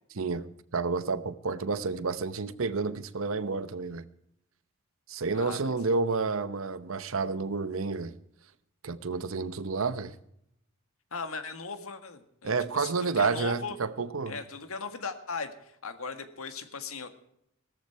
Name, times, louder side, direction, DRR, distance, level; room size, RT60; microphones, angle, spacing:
voice 1, 0.7-4.1 5.1-8.1 8.8-10.1 12.4-14.4, right 4 dB, 70° right, 0.8 m, -30 dB
voice 2, 5.3-5.7 11.1-13.8 14.3-17.1, left 4 dB, 85° left, 1.7 m, -38 dB
18.0 x 14.0 x 4.6 m
head